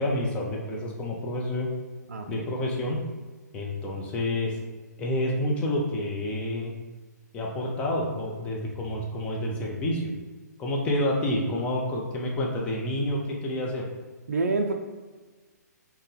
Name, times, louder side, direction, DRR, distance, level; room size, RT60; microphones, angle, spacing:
voice 1, 0.0-1.7 2.3-3.0 3.5-4.5 5.0-6.7 7.3-10.1 10.6-13.9, left 1 dB, 10° left, -2 dB, 0.5 m, -28 dB
voice 2, 2.1-2.5 14.3-14.7, right 3 dB, 55° right, 4 dB, 0.4 m, -27 dB
3.8 x 2.1 x 3.7 m, 1.3 s
figure-of-eight pair, 130°, 10 cm